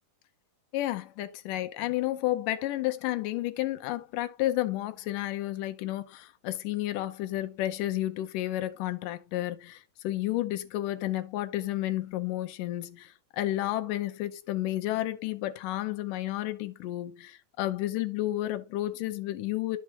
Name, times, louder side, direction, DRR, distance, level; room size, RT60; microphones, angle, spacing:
voice 1, 0.7-19.8, left 15 dB, 80° left, 2.2 m, -31 dB
12.0 x 4.7 x 2.9 m
omnidirectional pair, 3.8 m